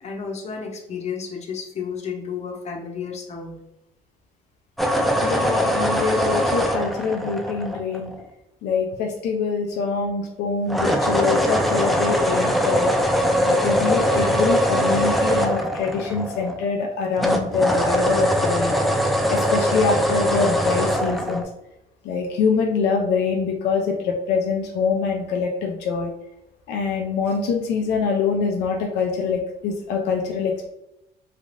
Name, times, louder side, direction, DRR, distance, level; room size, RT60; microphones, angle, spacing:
voice 1, 0.0-3.6, left 6 dB, 40° left, 2 dB, 0.7 m, -32 dB
sound 1, 4.8-8.2 10.7-16.8 17.2-21.4, equal, ahead, 0.3 m, -21 dB
voice 2, 5.2-8.1 8.6-12.9 13.4-18.7 19.3-21.4 22.0-26.1 26.7-30.7, left 5 dB, 80° left, 2 dB, 0.5 m, -24 dB
3.2 x 2.4 x 2.5 m, 0.88 s
cardioid pair, 110°, 17 cm